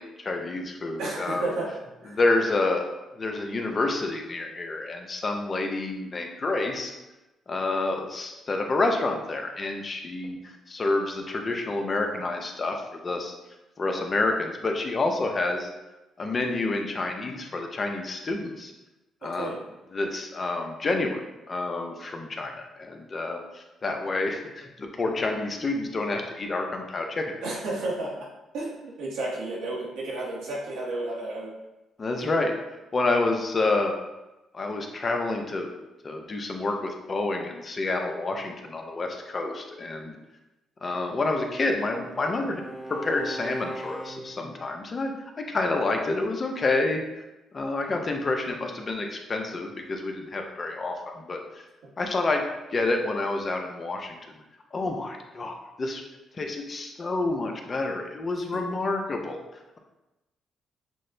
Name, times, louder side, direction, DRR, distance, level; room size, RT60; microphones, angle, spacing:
voice 1, 0.0-1.5 2.1-2.9 3.1-6.9 7.5-13.3 13.8-15.7 16.2-18.7 19.2-19.5 19.9-21.2 21.5-27.3 32.0-32.5 32.9-33.9 34.5-35.7 36.0-40.2 40.8-42.6 42.9-47.0 47.5-51.4 52.0-52.4 52.7-54.4 54.7-56.0 56.4-59.4, left 2 dB, 35° left, 3 dB, 0.6 m, -28 dB
voice 2, 1.0-1.7 2.0-2.2 19.2-19.6 27.4-28.3 28.5-31.5, right 2 dB, 90° right, -5 dB, 1.2 m, -32 dB
Bowed string instrument, 41.0-44.6, right 1 dB, 15° right, 0.5 m, -40 dB
6.1 x 2.1 x 2.6 m, 1.0 s
cardioid pair, 90°, 0 cm